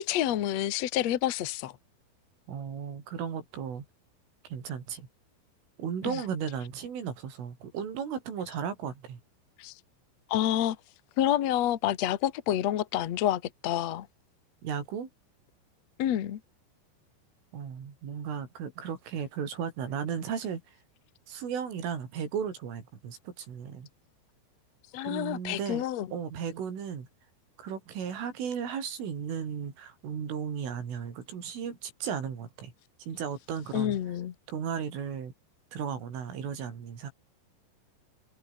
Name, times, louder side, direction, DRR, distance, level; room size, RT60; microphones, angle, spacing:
voice 1, 0.0-1.7 6.0-6.2 9.6-9.7 10.3-10.8 11.2-14.1 16.0-16.4 24.9-26.1 33.7-34.3, left 12 dB, 85° left, 1.5 m, -28 dB
voice 2, 2.5-3.9 4.5-5.1 5.8-9.2 14.6-15.1 17.5-20.8 21.3-23.9 25.0-25.8 26.1-27.1 27.6-32.7 33.0-34.0 34.5-35.3 35.7-37.1, right 7 dB, 85° right, 7.1 m, -35 dB
omnidirectional pair, 5.5 m